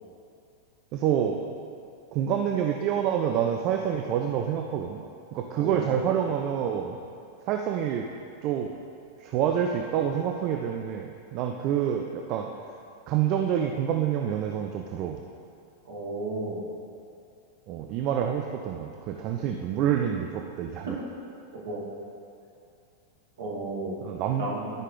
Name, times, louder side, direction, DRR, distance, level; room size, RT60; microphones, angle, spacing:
voice 1, 0.9-1.4 2.1-5.0 5.3-7.0 7.5-8.1 8.4-8.7 9.2-12.5 13.1-15.2 17.7-20.9 24.0-24.5 24.7-24.8, right 9 dB, 40° right, 3 dB, 0.5 m, -27 dB
voice 2, 5.5-6.0 15.8-16.7 21.5-21.8 23.4-24.0 24.4-24.7, right 2 dB, 60° right, -4 dB, 2.2 m, -33 dB
12.5 x 5.5 x 3.9 m, 2.6 s
figure-of-eight pair, 90°, 0 cm